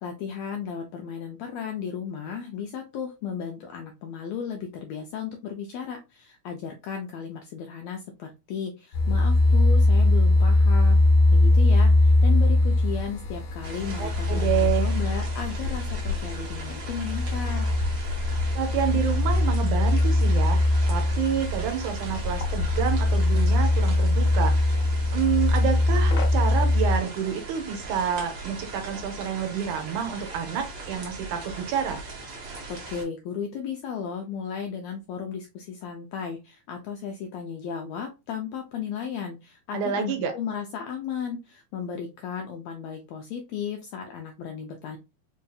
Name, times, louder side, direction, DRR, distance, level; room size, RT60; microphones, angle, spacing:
voice 1, 0.0-11.0 11.3-17.7 32.7-45.0, left 7 dB, 80° left, 4 dB, 1.5 m, -35 dB
sound 1, 8.9-27.0, left 2 dB, 65° left, 1.8 m, -21 dB
sound 2, 13.6-33.0, right 3 dB, 50° right, 1.5 m, -39 dB
voice 2, 14.0-14.9 18.5-20.6 20.9-24.6 25.1-32.0 39.7-40.3, right 8 dB, 75° right, 6 dB, 2.0 m, -28 dB
5.1 x 2.7 x 2.3 m, 0.26 s
omnidirectional pair, 3.6 m